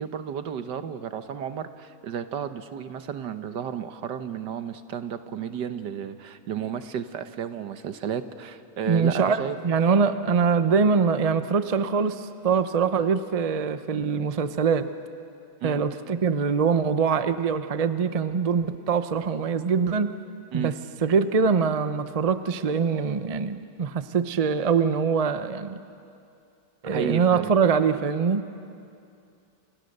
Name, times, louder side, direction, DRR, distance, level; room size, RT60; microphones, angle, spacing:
voice 1, 0.0-9.6 15.6-15.8 20.5-20.7 26.8-27.5, right 8 dB, 75° right, 10 dB, 1.6 m, -33 dB
voice 2, 8.9-14.9 15.6-20.1 20.5-20.8 21.0-25.8 26.8-28.4, right 5 dB, 35° right, 11 dB, 0.6 m, -23 dB
30.0 x 27.5 x 6.6 m, 2.5 s
omnidirectional pair, 1.9 m